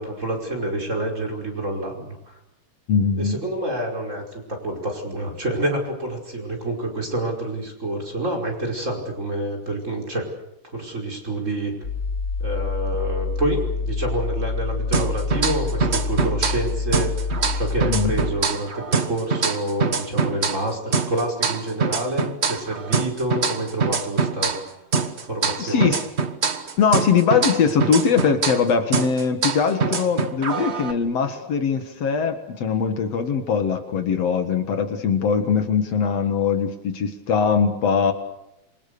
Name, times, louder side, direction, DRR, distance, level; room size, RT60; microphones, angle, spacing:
voice 1, 0.0-2.4 3.2-10.3 10.6-11.7 12.4-17.1 17.5-24.5 25.2-25.9, right 1 dB, 25° right, 1 dB, 5.4 m, -28 dB
voice 2, 2.9-3.4 17.9-18.1 25.6-26.0 26.8-38.1, left 6 dB, 60° left, 7 dB, 2.6 m, -21 dB
sound 1, 11.8-18.3, left 4 dB, 30° left, 5.0 m, -26 dB
sound 2, 14.9-16.7 16.9-20.7 20.9-24.7 24.9-28.7 28.9-30.9, right 5 dB, 55° right, 0.7 m, -24 dB
27.5 x 25.0 x 6.8 m, 0.85 s
omnidirectional pair, 3.4 m